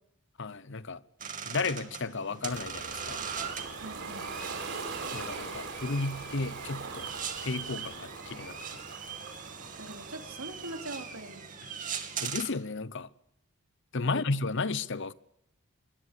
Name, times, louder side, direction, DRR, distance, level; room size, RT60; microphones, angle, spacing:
voice 1, 0.4-1.0 1.5-3.2 5.1-7.1 7.4-8.8 12.2-13.1 13.9-15.1, left 3 dB, 55° left, 0.9 m, -33 dB
sound 1, 1.2-12.5, right 7 dB, 40° right, 2.6 m, -40 dB
Ocean, 2.5-11.3, right 4 dB, 55° right, 5.8 m, -42 dB
voice 2, 3.8-4.3 9.8-11.4 14.0-14.3, right 1 dB, 70° right, 3.5 m, -43 dB
26.0 x 23.0 x 6.8 m
head